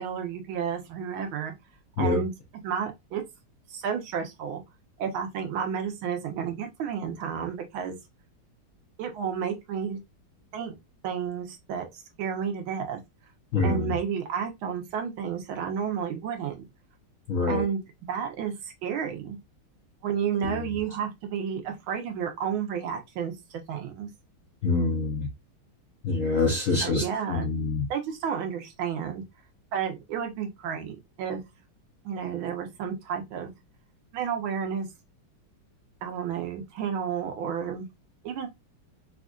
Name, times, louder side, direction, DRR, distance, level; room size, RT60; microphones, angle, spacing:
voice 1, 0.0-1.5 2.0-2.3 2.6-3.2 3.7-4.6 5.0-8.0 9.0-10.0 10.5-10.8 11.0-13.0 13.6-16.6 17.5-17.8 18.1-19.4 20.0-24.1 26.8-27.5 27.9-29.2 29.7-31.4 32.0-33.5 34.1-34.9 36.0-37.9 38.2-38.5, right 7 dB, 75° right, 1.5 m, -31 dB
voice 2, 13.5-13.9 17.3-17.6 20.4-20.6 24.6-25.3 26.0-27.0 27.3-27.9, left 3 dB, 75° left, 0.7 m, -25 dB
4.2 x 2.5 x 2.3 m
omnidirectional pair, 2.3 m